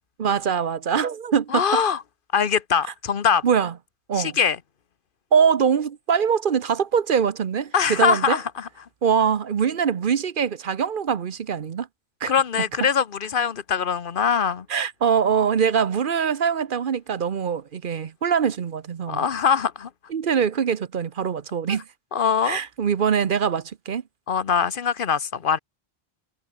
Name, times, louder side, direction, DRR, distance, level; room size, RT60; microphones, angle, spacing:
voice 1, 0.2-1.8 3.4-3.7 4.1-4.4 5.3-8.4 9.0-11.9 12.2-12.3 14.7-19.2 20.1-21.8 22.4-24.0, right 7 dB, 50° right, 0.9 m, -23 dB
voice 2, 1.5-2.0 2.3-3.4 4.1-4.6 7.7-8.7 12.3-14.7 19.1-19.9 21.7-21.8 22.1-22.6 24.3-25.6, left 7 dB, 50° left, 1.2 m, -22 dB
omnidirectional pair, 1.1 m